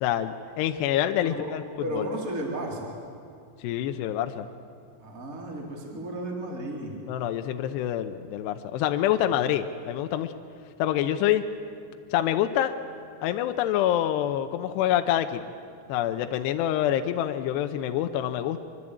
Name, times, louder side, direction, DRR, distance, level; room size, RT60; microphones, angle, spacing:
voice 1, 0.0-1.6 1.9-2.1 3.6-4.5 7.1-10.3 10.8-11.5 12.1-12.8 13.2-15.4 15.9-18.6, left 11 dB, 80° left, 7 dB, 2.9 m, -26 dB
voice 2, 1.8-2.9 5.0-7.0 9.3-9.4, right 1 dB, 20° right, 0 dB, 3.6 m, -34 dB
25.0 x 25.0 x 8.6 m, 2.4 s
omnidirectional pair, 5.1 m